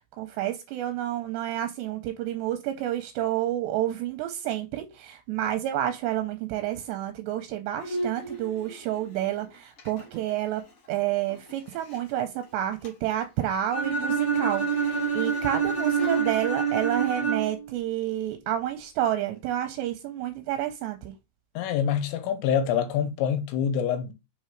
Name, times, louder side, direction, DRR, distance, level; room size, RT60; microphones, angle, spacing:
voice 1, 0.2-10.6 10.9-21.2, right 12 dB, 85° right, 2.5 m, -29 dB
Bowed string instrument, 7.8-12.1 12.4-12.5 12.8-13.1 13.4-16.3, right 1 dB, 60° left, 1.4 m, -38 dB
Bowed string instrument 2, 13.7-17.7, right 6 dB, 10° left, 1.2 m, -26 dB
voice 2, 21.6-24.1, left 8 dB, 80° left, 3.0 m, -26 dB
6.7 x 3.2 x 4.5 m
omnidirectional pair, 5.4 m